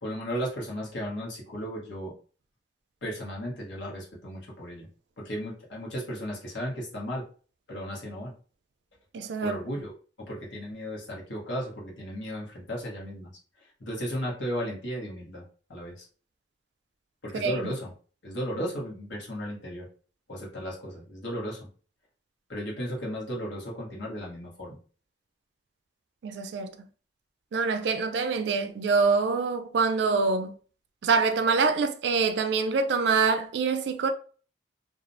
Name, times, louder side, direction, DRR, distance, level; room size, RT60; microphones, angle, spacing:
voice 1, 0.0-2.1 3.0-4.9 5.2-7.2 7.7-8.3 9.4-9.9 10.2-13.3 13.8-15.4 15.7-16.0 17.2-17.9 18.2-19.9 20.3-21.6 22.5-24.8, equal, 85° left, 1.0 m, -35 dB
voice 2, 9.1-9.6 17.3-17.6 26.2-26.7 27.5-30.5 31.0-34.1, right 4 dB, 70° right, 0.3 m, -25 dB
2.4 x 2.0 x 2.5 m
head